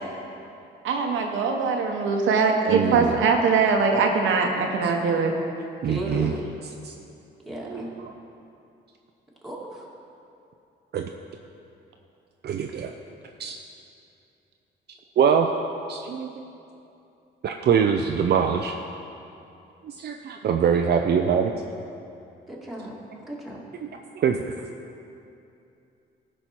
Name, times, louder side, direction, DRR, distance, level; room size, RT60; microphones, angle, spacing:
voice 1, 0.8-5.3, right 5 dB, 80° right, 2 dB, 1.0 m, -22 dB
voice 2, 2.7-3.2 5.8-6.3 6.8-6.9 7.7-8.1 10.9-11.1 12.4-12.9 13.4-13.6 15.2-15.5 15.9-16.4 17.4-18.8 19.8-21.5 24.2-24.4, right 7 dB, 55° right, 3 dB, 0.5 m, -23 dB
voice 3, 5.9-6.5 7.5-7.9 9.4-9.8 22.5-22.9 23.3-23.6, equal, ahead, -5 dB, 2.2 m, -34 dB
14.5 x 5.5 x 4.5 m, 2.7 s
cardioid pair, 90°, 20 cm